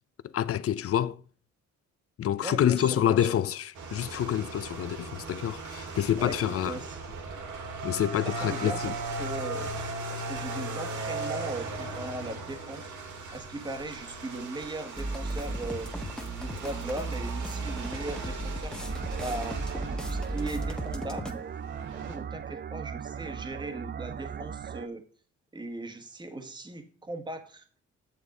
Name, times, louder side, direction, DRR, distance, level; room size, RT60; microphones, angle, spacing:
voice 1, 0.2-1.2 2.2-6.8 7.8-8.9, left 10 dB, 50° left, 0.5 m, -27 dB
voice 2, 2.4-3.3 6.1-7.0 8.2-8.9 9.2-9.7 10.1-12.9 13.3-15.9 16.4-18.8 19.2-19.6 19.9-21.4 22.1-25.0 25.5-27.6, right 2 dB, 15° right, 1.2 m, -38 dB
sound 1, 3.7-22.2, right 3 dB, 75° right, 2.1 m, -38 dB
sound 2, 15.0-21.3, right 1 dB, ahead, 1.1 m, -35 dB
sound 3, 18.8-24.9, right 8 dB, 35° right, 0.5 m, -38 dB
8.6 x 7.1 x 3.9 m
cardioid pair, 90°, 30 cm